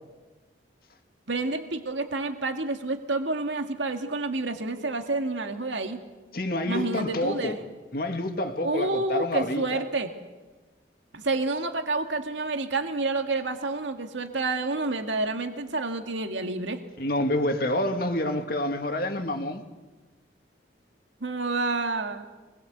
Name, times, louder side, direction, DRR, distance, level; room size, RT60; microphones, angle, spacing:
voice 1, 1.3-6.0 6.7-7.6 8.6-10.1 11.1-16.8 21.2-22.2, right 3 dB, 85° right, 2.0 m, -29 dB
voice 2, 6.3-7.6 7.9-9.8 17.0-19.6, left 1 dB, 50° left, 2.2 m, -28 dB
25.0 x 21.0 x 8.2 m
head